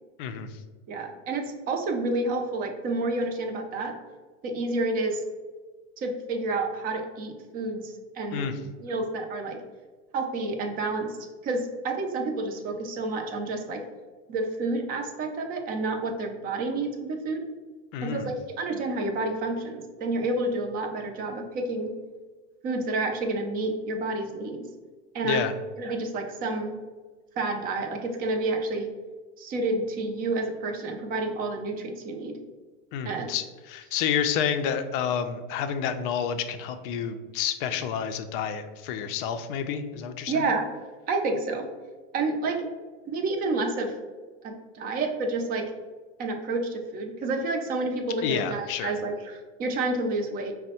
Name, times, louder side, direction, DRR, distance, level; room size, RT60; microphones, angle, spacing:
voice 1, 0.2-0.5 8.3-8.6 17.9-18.3 25.2-25.5 32.9-40.5 48.2-48.9, left 8 dB, 45° left, 9 dB, 0.4 m, -29 dB
voice 2, 0.9-3.9 4.4-5.2 6.0-9.6 10.1-11.2 11.4-13.8 14.3-17.5 18.0-21.9 22.6-24.6 25.1-25.4 25.8-26.7 27.4-28.9 29.4-32.4 33.0-33.3 40.3-40.7 41.1-41.7 42.1-42.6 43.1-43.9 44.4-45.7 46.2-50.5, right 2 dB, 25° right, 4 dB, 0.5 m, -29 dB
5.1 x 2.1 x 4.2 m, 1.3 s
supercardioid pair, 140°, 36 cm